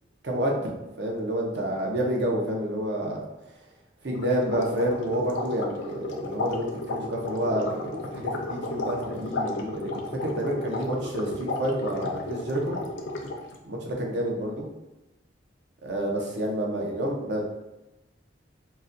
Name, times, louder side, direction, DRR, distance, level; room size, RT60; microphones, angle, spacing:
voice 1, 0.2-3.2 4.0-12.8 13.6-14.6 15.8-17.4, right 1 dB, 60° right, -1 dB, 0.6 m, -29 dB
sound 1, 4.1-13.6, left 2 dB, 75° left, 0.5 m, -33 dB
3.9 x 2.1 x 2.6 m, 0.98 s
head